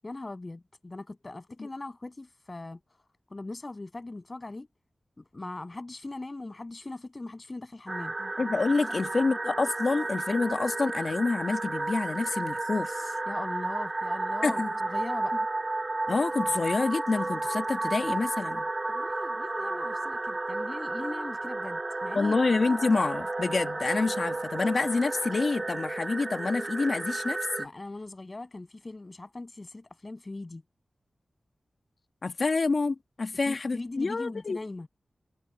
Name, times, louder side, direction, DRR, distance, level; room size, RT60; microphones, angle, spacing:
voice 1, 0.0-2.8 3.3-4.7 5.2-8.1 8.9-9.0 13.3-14.6 14.9-15.4 18.9-22.3 27.6-30.6 33.4-34.9, left 2 dB, 40° left, 7.8 m, -40 dB
sound 1, 7.9-27.7, right 2 dB, 40° right, 3.7 m, -32 dB
voice 2, 8.2-13.1 14.4-14.7 16.1-18.7 22.2-27.7 32.2-34.6, left 3 dB, 65° left, 1.9 m, -28 dB
cardioid pair, 50°, 0 cm